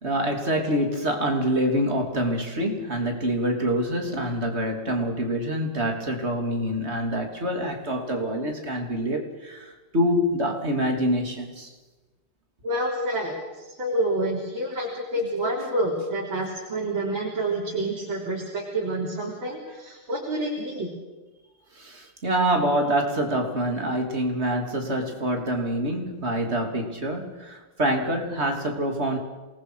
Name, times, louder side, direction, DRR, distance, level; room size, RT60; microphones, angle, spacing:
voice 1, 0.0-11.7 21.7-29.2, equal, 30° right, 3 dB, 3.4 m, -26 dB
voice 2, 12.6-20.9, right 1 dB, 65° right, -3 dB, 4.4 m, -28 dB
27.5 x 20.0 x 6.4 m, 1.2 s
omnidirectional pair, 2.4 m